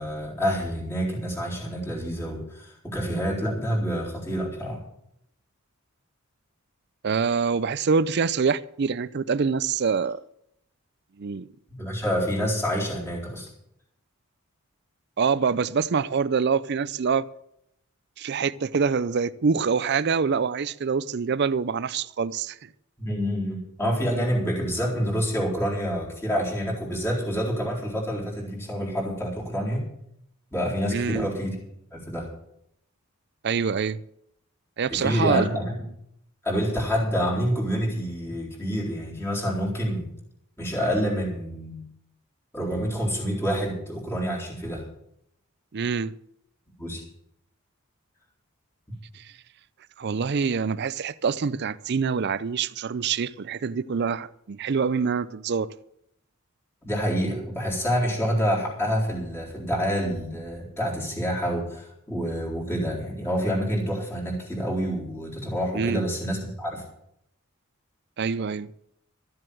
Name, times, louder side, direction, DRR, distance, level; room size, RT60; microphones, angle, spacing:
voice 1, 0.0-4.8 11.7-13.5 23.0-29.9 30.5-31.6 31.9-32.3 34.9-35.8 36.4-40.1 40.6-41.9 42.5-44.8 46.8-47.0 56.8-66.8, equal, 10° left, 3.9 m, -27 dB
voice 2, 7.0-10.2 11.2-11.5 15.2-17.2 18.2-22.7 30.9-31.3 33.4-34.0 34.8-35.5 45.7-46.1 49.1-49.2 50.0-55.7 65.7-66.0 68.2-68.7, right 5 dB, 50° right, 0.5 m, -25 dB
13.5 x 7.7 x 7.7 m
head